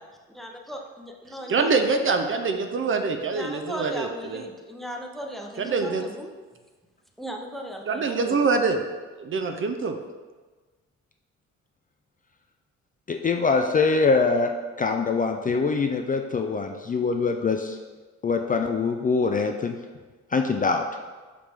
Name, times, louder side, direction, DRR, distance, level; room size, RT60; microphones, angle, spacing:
voice 1, 0.4-1.8 3.3-6.3 7.2-8.4, equal, ahead, 2 dB, 0.8 m, -37 dB
voice 2, 1.5-4.4 5.6-6.0 7.9-8.8 9.2-10.0, right 4 dB, 45° right, 6 dB, 0.6 m, -25 dB
voice 3, 13.1-14.5 14.8-17.8 18.2-19.8 20.3-20.8, left 4 dB, 30° left, 4 dB, 0.4 m, -23 dB
5.8 x 5.0 x 3.5 m, 1.3 s
cardioid pair, 90°, 30 cm